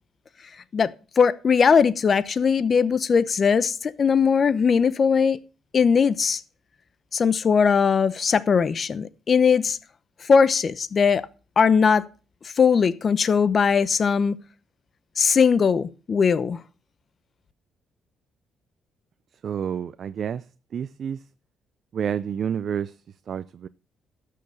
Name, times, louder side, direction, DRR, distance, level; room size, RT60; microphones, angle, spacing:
voice 1, 0.7-5.4 5.7-6.4 7.1-9.8 10.2-11.2 11.6-12.0 12.6-14.4 15.2-16.6, left 6 dB, 45° left, 0.9 m, -20 dB
voice 2, 19.4-20.5 20.7-21.2 21.9-23.0 23.3-23.7, right 8 dB, 55° right, 0.5 m, -29 dB
12.5 x 6.7 x 6.5 m
cardioid pair, 90°, 0 cm